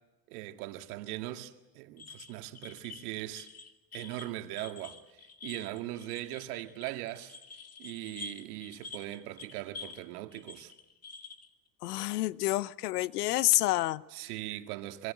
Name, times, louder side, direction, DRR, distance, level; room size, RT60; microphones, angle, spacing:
voice 1, 0.3-3.5 3.9-7.4 7.8-10.7 14.1-15.1, right 15 dB, 70° right, 2.1 m, -40 dB
sound 1, 2.0-10.1 10.3-11.5, left 4 dB, 30° left, 2.5 m, -48 dB
voice 2, 11.8-14.0, left 17 dB, 80° left, 0.9 m, -28 dB
25.5 x 23.5 x 8.9 m
hypercardioid pair, 85°, 46 cm